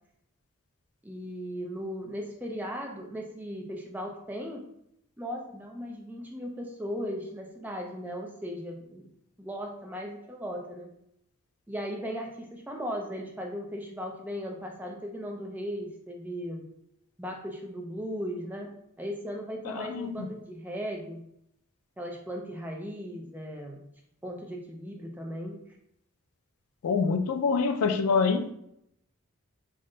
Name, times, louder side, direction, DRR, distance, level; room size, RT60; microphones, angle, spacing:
voice 1, 1.0-4.6 5.2-9.1 9.4-10.9 11.7-16.6 17.2-18.7 19.0-21.2 22.0-23.8 24.2-25.6, equal, 10° right, 1 dB, 0.4 m, -37 dB
voice 2, 19.6-20.3 26.8-28.5, left 5 dB, 85° left, 8 dB, 0.4 m, -26 dB
3.6 x 2.1 x 3.8 m, 0.75 s
head